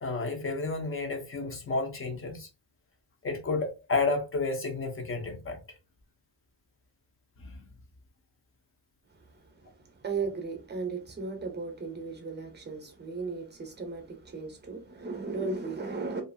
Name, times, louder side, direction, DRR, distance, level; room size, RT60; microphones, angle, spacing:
voice 1, 0.0-2.5 3.2-5.6 7.5-7.6, left 3 dB, 30° left, 0.6 m, -31 dB
voice 2, 9.1-16.2, right 4 dB, 25° right, 0.6 m, -36 dB
2.5 x 2.5 x 2.5 m
wide cardioid pair, 170°, 42 cm